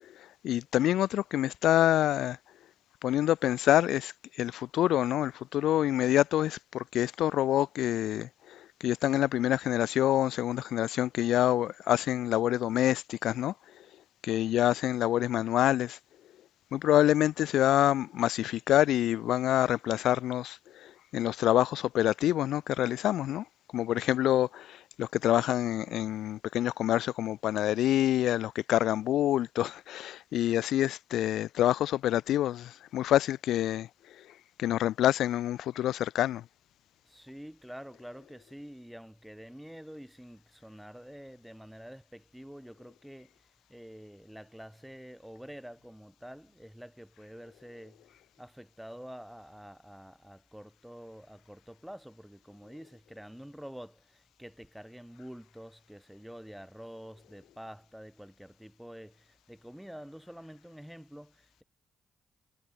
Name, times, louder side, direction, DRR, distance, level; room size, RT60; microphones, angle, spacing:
voice 1, 0.4-2.4 3.0-13.5 14.2-16.0 16.7-23.4 23.7-33.9 34.6-36.4, left 12 dB, 75° left, 0.6 m, -27 dB
voice 2, 37.0-61.6, equal, 5° right, 7.1 m, -48 dB
hypercardioid pair, 45°, 0 cm